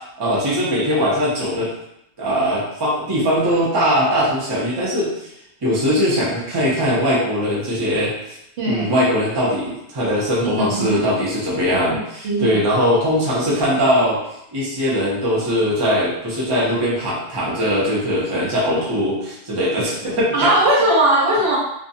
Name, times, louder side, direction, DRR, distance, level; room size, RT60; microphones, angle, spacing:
voice 1, 0.2-1.7 2.2-5.1 5.6-8.1 8.6-14.2 14.5-20.3, equal, 25° right, -6 dB, 0.6 m, -20 dB
voice 2, 8.6-8.9 10.4-11.0 11.4-11.5 11.9-12.6 20.3-21.6, right 1 dB, 65° right, -4 dB, 0.8 m, -19 dB
2.4 x 2.2 x 2.7 m, 0.80 s
omnidirectional pair, 1.2 m